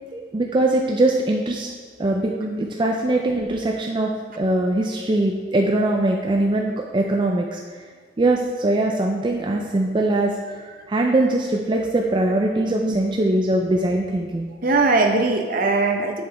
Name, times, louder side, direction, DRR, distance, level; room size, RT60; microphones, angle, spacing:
voice 1, 0.1-1.7 2.0-2.3 2.6-4.1 4.4-7.6 8.2-10.3 10.9-14.5, right 2 dB, 25° right, 0 dB, 0.4 m, -21 dB
voice 2, 14.6-16.2, right 3 dB, 50° right, 4 dB, 0.7 m, -20 dB
7.8 x 5.5 x 3.4 m, 1.5 s
head